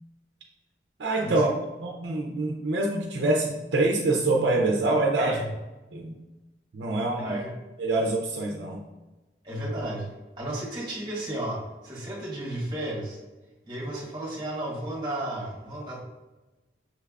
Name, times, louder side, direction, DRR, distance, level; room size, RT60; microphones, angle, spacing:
voice 1, 1.0-1.5 1.8-5.4 5.9-6.2 6.7-7.4 7.8-8.8, right 2 dB, 75° right, 0 dB, 0.6 m, -25 dB
voice 2, 7.2-7.5 9.4-10.1 10.4-13.2 13.6-16.0, right 1 dB, 25° right, -5 dB, 1.5 m, -33 dB
6.0 x 3.4 x 2.4 m, 1.1 s
head